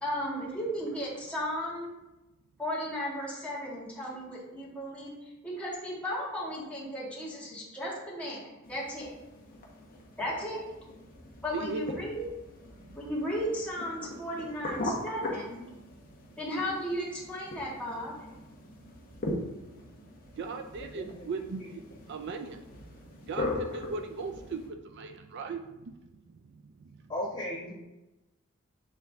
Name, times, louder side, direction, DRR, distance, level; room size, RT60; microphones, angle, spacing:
voice 1, 0.0-1.9 2.6-5.1 5.4-9.1 10.2-10.6 11.4-12.3 13.0-15.6 16.4-18.1, equal, 5° left, -7 dB, 1.8 m, -35 dB
sound 1, 8.6-24.7, left 2 dB, 45° left, 1.0 m, -40 dB
voice 2, 11.5-12.0 12.8-13.0 14.4-14.5 15.9-16.2 18.5-27.1, right 4 dB, 55° right, 6 dB, 0.4 m, -40 dB
voice 3, 20.9-21.3 21.6-21.7 27.1-27.7, left 1 dB, 20° left, -7 dB, 1.9 m, -36 dB
7.7 x 3.8 x 3.5 m, 1.0 s
head